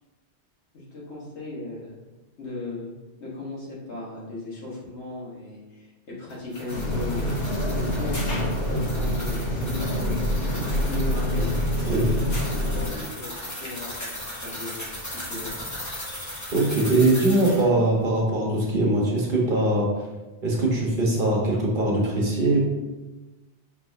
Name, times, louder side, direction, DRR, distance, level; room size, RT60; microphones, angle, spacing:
voice 1, 0.7-1.9 2.4-2.9 3.2-7.2 7.7-8.4 8.7-11.6 12.4-13.3 13.6-15.5, left 2 dB, 75° left, -5 dB, 1.6 m, -37 dB
sound 1, 6.3-17.7, left 1 dB, 15° left, 0.8 m, -37 dB
sound 2, 6.7-12.9, equal, 90° left, 1.7 m, -26 dB
voice 2, 16.5-19.9 20.4-22.6, right 2 dB, 50° right, -3 dB, 1.2 m, -22 dB
5.2 x 3.9 x 2.6 m, 1.1 s
omnidirectional pair, 1.2 m